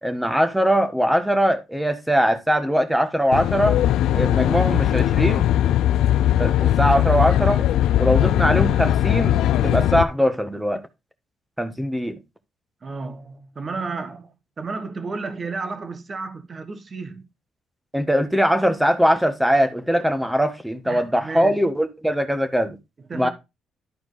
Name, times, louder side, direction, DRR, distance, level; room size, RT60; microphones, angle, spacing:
voice 1, 0.0-3.8 4.1-5.6 6.4-7.6 8.0-10.8 11.6-12.2 17.9-22.8 23.1-23.3, equal, 5° right, 1.4 m, -21 dB
Aircraft, 3.3-10.0, left 12 dB, 85° left, 0.5 m, -19 dB
voice 2, 12.8-17.3 20.9-21.6 23.1-23.3, right 4 dB, 40° right, 1.5 m, -32 dB
12.0 x 4.4 x 4.0 m
cardioid pair, 90°, 0 cm